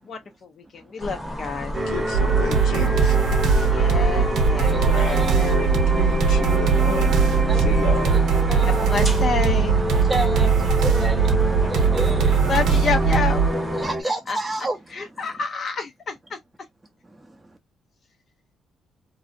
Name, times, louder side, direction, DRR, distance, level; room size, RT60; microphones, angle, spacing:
voice 1, 0.9-1.7 3.7-4.8 8.9-9.8 12.5-13.4 14.3-14.4 15.0-16.1, left 5 dB, 50° left, 0.5 m, -27 dB
sound 1, 1.0-13.9, equal, 10° left, 0.8 m, -30 dB
voice 2, 1.6-3.2 3.6-3.9 4.6-7.2 7.5-8.1, left 5 dB, 90° left, 0.8 m, -32 dB
sound 2, 1.7-14.0, right 1 dB, 30° right, 0.8 m, -27 dB
sound 3, 2.1-13.5, right 6 dB, 80° right, 0.6 m, -20 dB
voice 3, 4.5-5.6 7.5-9.0 10.0-11.4 11.7-12.4 13.8-15.4 17.1-17.6, right 1 dB, 10° right, 0.4 m, -31 dB
2.5 x 2.0 x 2.4 m
cardioid pair, 90°, 0 cm